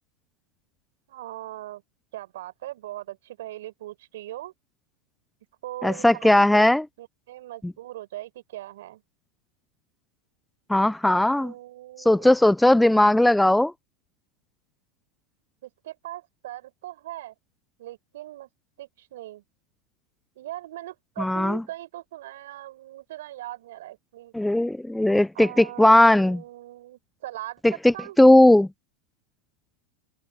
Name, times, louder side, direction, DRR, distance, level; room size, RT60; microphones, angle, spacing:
voice 1, 1.1-1.8 2.1-4.5 5.6-9.0 11.4-12.3 15.6-17.3 17.8-18.5 18.8-19.4 20.4-24.3 25.3-28.2, right 15 dB, 70° right, 5.7 m, -40 dB
voice 2, 5.8-6.8 7.6-7.7 10.7-11.5 12.0-13.7 21.2-21.6 24.3-26.4 27.8-28.7, left 1 dB, 5° left, 0.7 m, -18 dB
open air
hypercardioid pair, 100°, 0 cm